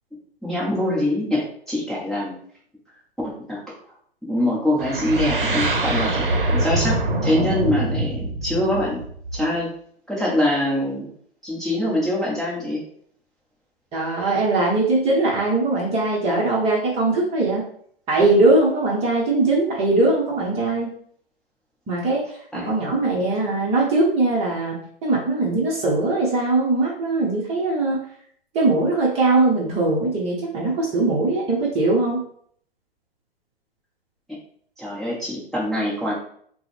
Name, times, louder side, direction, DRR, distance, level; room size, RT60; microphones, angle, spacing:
voice 1, 0.4-2.4 3.2-3.6 4.3-6.1 6.5-7.0 7.2-9.0 9.3-9.7 10.1-11.1 11.4-12.8 22.5-22.7 34.8-36.1, left 1 dB, ahead, -8 dB, 1.1 m, -24 dB
sound 1, 4.8-9.6, right 2 dB, 60° right, 0.9 m, -24 dB
voice 2, 13.9-17.6 18.1-20.9 21.9-24.8 25.0-28.0 28.5-32.2, right 2 dB, 20° right, -4 dB, 1.1 m, -21 dB
5.9 x 2.3 x 3.4 m, 0.62 s
figure-of-eight pair, 110°, 30 cm